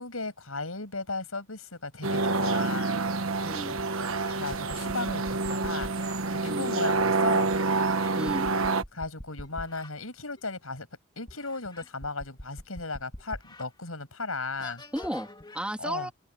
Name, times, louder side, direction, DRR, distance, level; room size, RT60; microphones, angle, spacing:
voice 1, 0.0-3.1 4.3-7.5 8.9-10.9 11.2-14.8 15.8-16.1, left 3 dB, 90° left, 7.2 m, -36 dB
sound 1, 2.0-8.8, right 3 dB, 75° right, 1.3 m, -27 dB
voice 2, 3.4-3.8 6.4-6.7 8.1-8.5 14.9-16.1, equal, 5° right, 2.9 m, -34 dB
sound 2, 3.8-6.2 7.5-9.9 10.4-10.5 11.3-13.7 14.1-14.2 14.6-15.6, left 1 dB, 20° left, 3.0 m, -44 dB
head